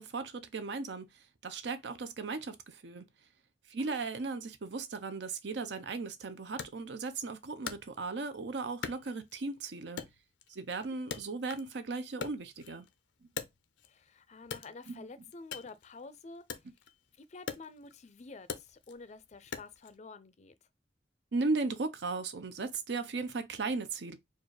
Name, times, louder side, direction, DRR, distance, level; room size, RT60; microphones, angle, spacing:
voice 1, 0.0-3.1 3.7-10.0 10.5-12.9 14.9-15.1 21.3-24.2, right 3 dB, 70° right, 0.6 m, -36 dB
voice 2, 3.8-4.1 10.8-11.0 13.8-16.7 17.1-20.5, left 3 dB, 40° left, 0.5 m, -50 dB
Wood, 6.6-8.4 8.8-9.6 10.0-11.8 12.1-14.0 14.4-20.0, left 6 dB, 90° left, 0.6 m, -44 dB
4.4 x 2.4 x 3.1 m
head